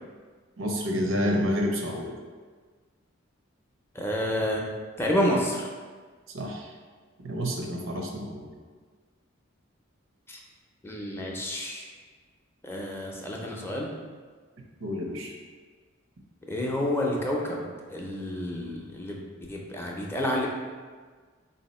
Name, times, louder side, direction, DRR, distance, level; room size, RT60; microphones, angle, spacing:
voice 1, 0.6-2.2 6.3-6.7 7.2-8.5 14.8-15.3, equal, 90° right, 1 dB, 0.7 m, -29 dB
voice 2, 3.9-4.6 5.0-5.7 10.3-10.4 10.8-11.9 12.6-13.9 16.5-20.5, left 1 dB, 10° left, -2 dB, 0.5 m, -29 dB
3.7 x 2.7 x 4.1 m, 1.5 s
head